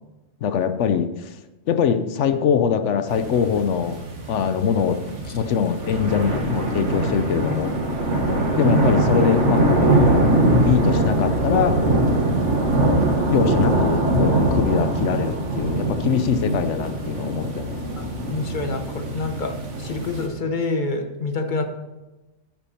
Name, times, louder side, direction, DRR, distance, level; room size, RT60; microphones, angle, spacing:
voice 1, 0.4-1.1 1.7-4.0 4.3-5.0 5.3-7.7 8.6-9.9 10.5-11.8 13.3-17.8, left 7 dB, 80° left, 10 dB, 1.0 m, -22 dB
sound 1, 3.1-20.3, right 2 dB, 90° right, 2.0 m, -22 dB
voice 2, 18.0-21.6, left 3 dB, 45° left, 6 dB, 1.2 m, -27 dB
10.5 x 9.2 x 4.4 m, 1.1 s
omnidirectional pair, 1.2 m